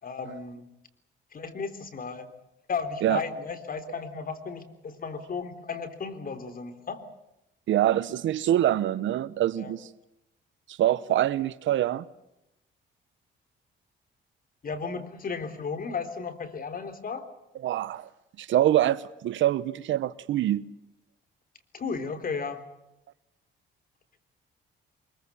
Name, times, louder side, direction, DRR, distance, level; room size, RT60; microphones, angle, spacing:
voice 1, 0.0-0.7 1.3-2.3 2.7-7.0 9.6-9.8 14.6-17.3 21.7-22.6, left 5 dB, 45° left, 3.6 m, -34 dB
voice 2, 7.7-9.9 10.8-12.0 17.6-18.1 18.4-20.6, right 12 dB, 75° right, 1.0 m, -25 dB
24.5 x 22.5 x 7.1 m
cardioid pair, 90°, 20 cm